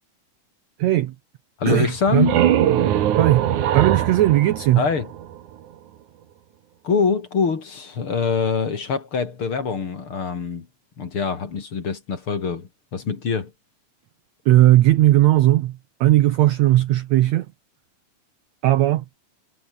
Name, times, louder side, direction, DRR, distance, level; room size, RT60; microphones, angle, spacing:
voice 1, 0.8-1.1 1.7-2.3 3.2-4.9 14.4-17.5 18.6-19.0, right 14 dB, 80° right, 1.6 m, -17 dB
voice 2, 1.6-2.4 4.8-5.1 6.8-10.7 11.0-13.5, left 5 dB, 40° left, 3.0 m, -24 dB
sound 1, 1.9-5.6, right 11 dB, 60° right, 2.8 m, -21 dB
omnidirectional pair, 4.2 m